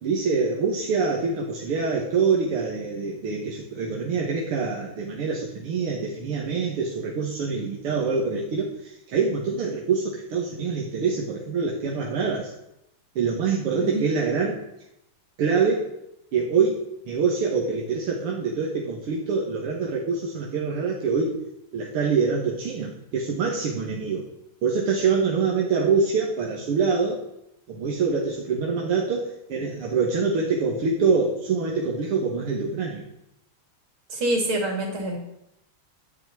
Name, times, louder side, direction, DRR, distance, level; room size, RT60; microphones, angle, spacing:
voice 1, 0.0-12.5 13.2-14.6 15.4-15.9 16.3-21.4 21.7-24.3 24.6-27.2 27.7-33.1, right 5 dB, 85° right, -2 dB, 2.4 m, -25 dB
voice 2, 34.1-35.2, right 1 dB, 70° right, 1 dB, 3.9 m, -26 dB
11.0 x 6.6 x 9.3 m, 0.84 s
omnidirectional pair, 2.4 m